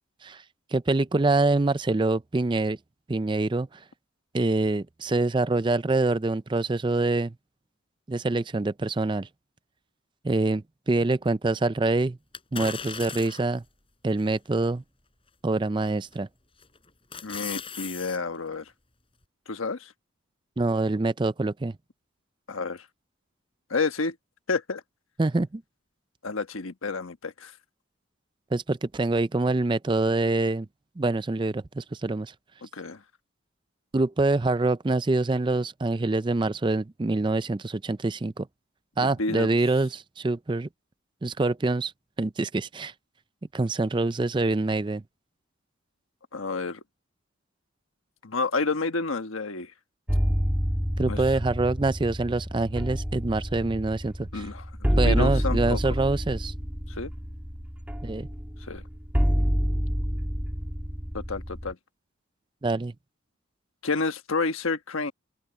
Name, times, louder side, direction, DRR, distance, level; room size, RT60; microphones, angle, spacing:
voice 1, 0.7-2.8 3.1-3.7 4.3-7.3 8.1-9.3 10.2-12.2 12.5-13.6 14.0-14.8 15.4-16.3 20.6-21.8 25.2-25.6 28.5-30.7 31.0-32.3 33.9-38.5 39.0-40.7 41.2-41.9 42.2-42.9 43.5-45.0 51.0-54.5 55.0-56.5 58.0-58.3 62.6-62.9, right 2 dB, 25° right, 0.4 m, -25 dB
sound 1, 12.3-13.6 14.2-14.3 15.9-16.2 16.6-18.2 18.5-18.6, left 7 dB, 25° left, 6.1 m, -37 dB
voice 2, 17.2-18.7 19.5-19.9 22.5-22.8 23.7-24.1 24.5-24.8 26.2-27.5 32.6-33.0 39.0-39.6 46.3-46.8 48.2-49.7 51.1-51.2 54.3-55.8 56.9-57.1 58.7-58.8 61.1-61.8 63.8-65.1, left 3 dB, 90° left, 1.4 m, -30 dB
sound 2, 50.1-61.7, equal, 10° right, 2.3 m, -28 dB
open air
head